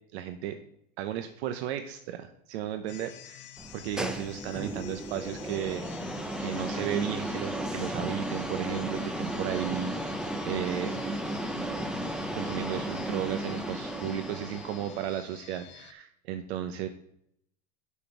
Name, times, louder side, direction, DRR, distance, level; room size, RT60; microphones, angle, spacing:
voice 1, 0.1-0.6 1.0-3.5 3.7-5.8 6.4-10.9 11.5-11.7 12.3-16.9, right 11 dB, 75° right, 7 dB, 1.0 m, -34 dB
sound 1, 2.9-15.9, left 12 dB, 35° left, 0.7 m, -49 dB
sound 2, 3.6-15.2, right 1 dB, ahead, 0.6 m, -34 dB
6.5 x 5.4 x 6.8 m, 0.73 s
supercardioid pair, 140°, 33 cm